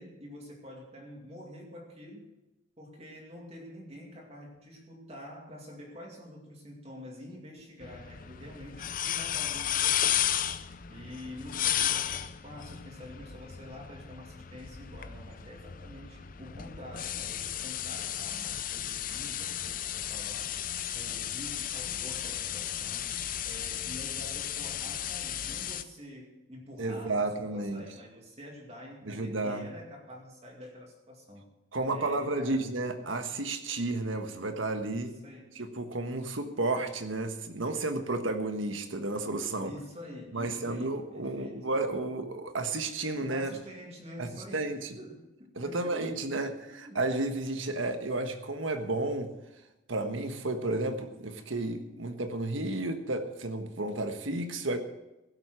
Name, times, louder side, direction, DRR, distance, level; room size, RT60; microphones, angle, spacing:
voice 1, 0.0-2.3 2.8-10.6 10.9-31.5 31.9-32.7 34.9-35.6 39.6-41.6 43.3-46.2 46.8-47.0, left 1 dB, 30° right, -1 dB, 2.4 m, -47 dB
sound 1, 7.8-25.8, left 10 dB, 45° left, 0.5 m, -34 dB
voice 2, 26.8-27.8 29.1-29.7 31.7-35.1 35.5-39.7 40.3-43.5 44.2-44.9 45.6-49.3 49.9-54.8, right 2 dB, 80° right, 7 dB, 1.4 m, -32 dB
16.5 x 7.9 x 6.3 m, 0.97 s
head